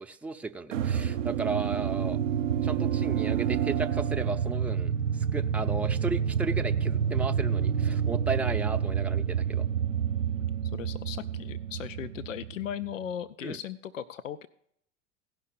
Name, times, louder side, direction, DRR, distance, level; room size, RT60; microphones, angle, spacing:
voice 1, 0.0-2.2 2.6-9.7 13.4-13.6, right 3 dB, 5° right, 6 dB, 0.6 m, -34 dB
sound 1, 0.7-12.9, right 8 dB, 80° right, 0.6 m, -28 dB
voice 2, 10.7-14.5, left 10 dB, 85° left, 13 dB, 0.5 m, -37 dB
16.0 x 5.8 x 6.8 m, 0.70 s
figure-of-eight pair, 75°, 38 cm